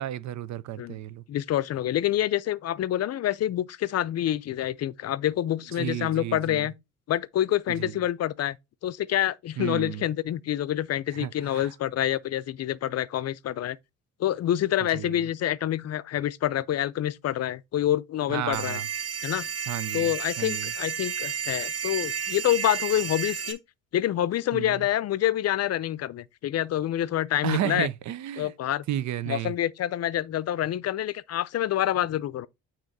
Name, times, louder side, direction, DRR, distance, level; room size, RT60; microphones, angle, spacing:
voice 1, 0.0-1.2 5.8-6.6 7.8-7.9 9.6-10.0 11.2-11.7 14.9-15.1 18.3-18.9 19.7-20.7 24.5-24.9 27.4-28.5 28.9-29.5, right 12 dB, 70° right, 0.5 m, -32 dB
voice 2, 1.3-6.7 7.1-8.6 8.8-13.8 14.2-18.8 19.2-19.5 19.9-23.6 23.9-27.9 28.4-28.8 29.3-32.5, left 12 dB, 55° left, 0.5 m, -27 dB
sound 1, 18.5-23.5, right 7 dB, 55° right, 1.5 m, -32 dB
8.9 x 3.0 x 4.0 m
cardioid pair, 90°, 30 cm